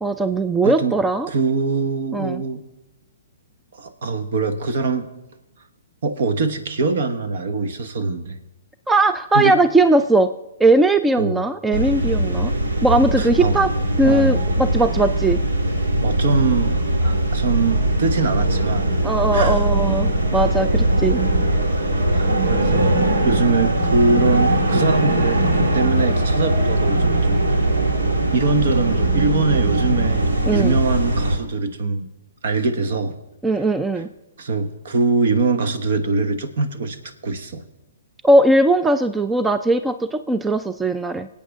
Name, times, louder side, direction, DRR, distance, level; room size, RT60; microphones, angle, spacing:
voice 1, 0.0-1.3 2.1-2.4 8.9-10.3 10.6-12.5 12.8-13.7 14.0-15.4 19.0-21.2 30.4-30.8 33.4-34.1 38.2-41.3, right 2 dB, 10° right, 11 dB, 0.4 m, -19 dB
voice 2, 0.6-0.9 1.3-2.6 3.8-5.1 6.0-8.4 9.3-9.6 11.2-11.4 13.2-13.6 14.0-14.4 16.0-18.9 19.3-19.6 21.9-25.5 25.7-27.4 28.3-32.1 32.4-33.1 34.4-37.0 37.2-37.6, right 4 dB, 60° right, 9 dB, 1.3 m, -22 dB
sound 1, 11.7-31.4, right 1 dB, 80° right, 1.7 m, -20 dB
25.0 x 8.7 x 3.6 m, 0.97 s
figure-of-eight pair, 125°, 0 cm